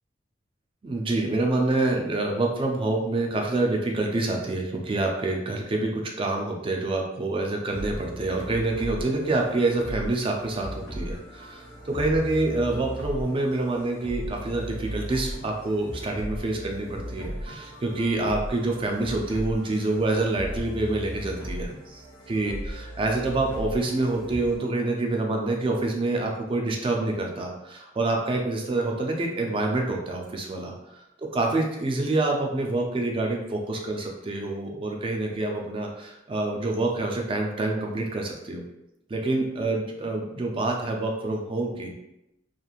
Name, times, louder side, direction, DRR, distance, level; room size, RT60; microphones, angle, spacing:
voice 1, 0.8-22.0 22.3-30.7 31.2-38.6 39.1-42.0, right 2 dB, 30° right, 1 dB, 0.4 m, -27 dB
sound 1, 7.7-24.6, equal, 65° left, 1.0 m, -37 dB
2.9 x 2.5 x 2.4 m, 0.88 s
head